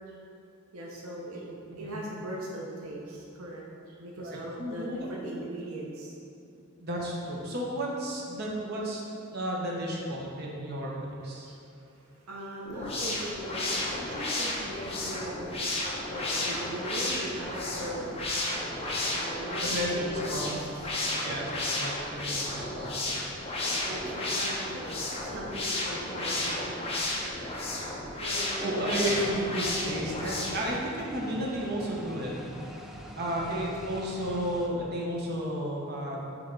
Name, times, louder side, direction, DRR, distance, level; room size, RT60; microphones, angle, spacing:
voice 1, 0.7-6.2 11.4-18.4 19.1-21.5 23.7-26.8 27.4-27.5 28.2-28.9 33.4-33.6, right 1 dB, 85° right, -3 dB, 0.8 m, -40 dB
voice 2, 4.2-5.1 6.8-9.0 9.3-10.9 11.2-11.5 19.6-20.4 21.2-21.5 21.8-22.0 22.2-22.9 28.6-32.3 33.2-36.4, equal, 50° right, -3 dB, 1.0 m, -32 dB
sound 1, 12.6-30.7, left 2 dB, 25° left, 1.0 m, -33 dB
sound 2, 29.1-34.7, equal, ahead, 0.4 m, -44 dB
8.7 x 3.4 x 4.0 m, 2.7 s
head